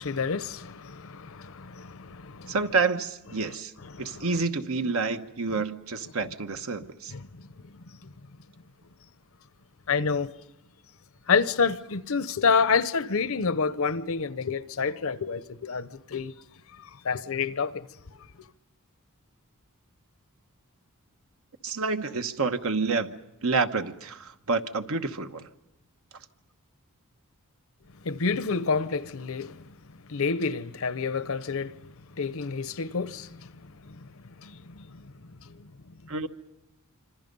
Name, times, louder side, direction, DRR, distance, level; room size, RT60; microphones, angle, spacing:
voice 1, 0.0-2.6 3.4-3.6 3.9-4.3 5.5-5.6 7.1-8.1 9.9-10.3 11.3-16.3 16.8-17.9 28.0-29.7 30.1-31.7 32.2-34.1 34.4-35.1 35.4-35.7, left 5 dB, 65° left, 0.8 m, -29 dB
voice 2, 2.5-3.7 4.0-7.1 21.6-23.1 23.4-25.5 36.1-36.3, right 4 dB, 65° right, 1.1 m, -28 dB
26.5 x 25.5 x 5.4 m
head